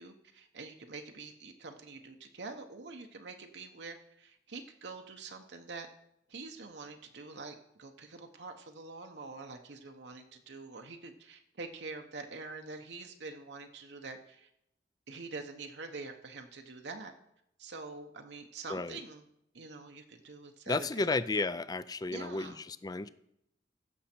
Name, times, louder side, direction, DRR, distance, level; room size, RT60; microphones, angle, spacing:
voice 1, 0.0-5.9 6.3-14.5 15.1-17.1 17.6-19.2 19.5-21.1 22.1-22.6, right 3 dB, 70° right, 4 dB, 0.9 m, -45 dB
voice 2, 20.7-23.1, left 3 dB, 20° left, 15 dB, 0.4 m, -33 dB
15.5 x 6.4 x 4.4 m, 0.79 s
head